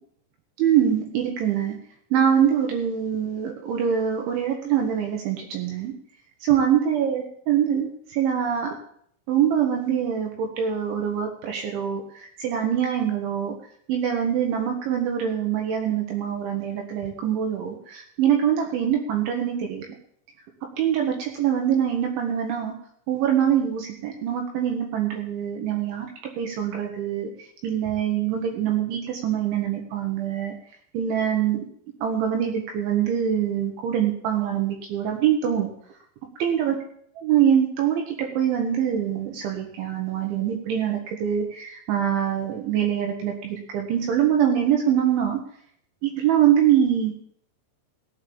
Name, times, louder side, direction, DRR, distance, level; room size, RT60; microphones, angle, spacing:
voice 1, 0.6-1.8 2.1-5.9 6.4-8.7 9.3-13.5 13.9-19.9 20.8-22.7 23.1-26.1 26.4-27.3 27.6-30.5 30.9-31.7 32.0-35.7 36.4-36.8 37.2-45.4 46.0-47.1, right 9 dB, 70° right, 2 dB, 3.8 m, -24 dB
16.5 x 8.4 x 7.1 m, 0.64 s
omnidirectional pair, 5.9 m